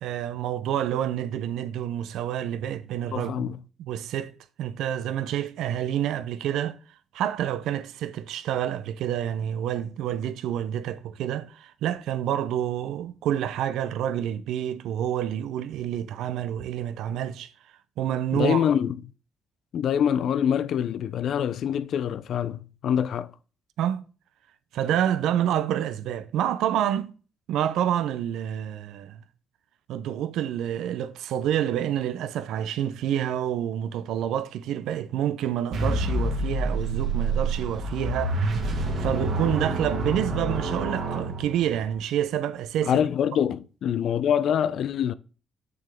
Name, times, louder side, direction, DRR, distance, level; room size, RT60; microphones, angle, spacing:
voice 1, 0.0-3.5 3.8-4.3 4.6-6.8 7.1-17.5 18.0-18.6 23.8-24.0 24.7-27.1 27.5-29.2 29.9-43.0, right 10 dB, 85° right, 0.5 m, -28 dB
voice 2, 3.1-3.6 18.3-19.0 19.7-23.3 42.8-45.1, left 9 dB, 70° left, 0.4 m, -25 dB
sound 1, 35.7-41.9, right 2 dB, 70° right, 2.0 m, -27 dB
6.8 x 6.3 x 3.5 m
cardioid pair, 90°, 0 cm